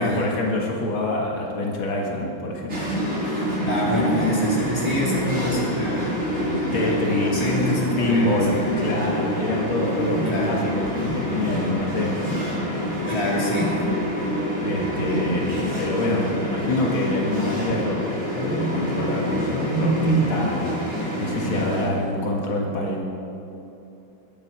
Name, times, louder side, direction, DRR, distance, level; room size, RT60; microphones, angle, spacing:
voice 1, 0.0-2.9 3.2-3.8 6.2-7.5 8.0-12.3 14.6-23.0, left 1 dB, 80° left, -1 dB, 2.5 m, -26 dB
sound 1, 2.7-21.9, equal, 30° right, 4.9 m, -26 dB
voice 2, 3.7-6.2 6.7-8.7 10.2-10.6 13.1-13.8, left 1 dB, 15° left, -5 dB, 3.3 m, -26 dB
23.5 x 10.0 x 4.7 m, 2.9 s
omnidirectional pair, 2.2 m